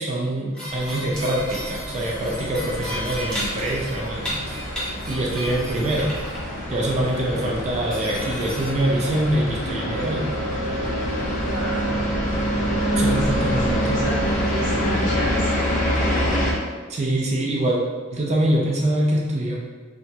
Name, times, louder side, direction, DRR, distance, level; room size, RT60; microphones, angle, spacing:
voice 1, 0.0-6.1 6.7-10.3 12.9-14.0 16.9-17.8 18.1-19.6, right 1 dB, 35° right, -3 dB, 0.4 m, -24 dB
sound 1, 0.5-6.5 6.9-7.3 7.6-7.7 7.9-8.7, equal, 5° left, 0.7 m, -34 dB
sound 2, 0.7-16.5, equal, 40° left, 0.5 m, -26 dB
sound 3, 9.6-14.7, right 3 dB, 50° right, 0.8 m, -39 dB
voice 2, 11.3-12.0 12.8-15.5 16.0-16.2, left 1 dB, 70° left, -8 dB, 1.0 m, -31 dB
2.9 x 2.3 x 2.7 m, 1.5 s
head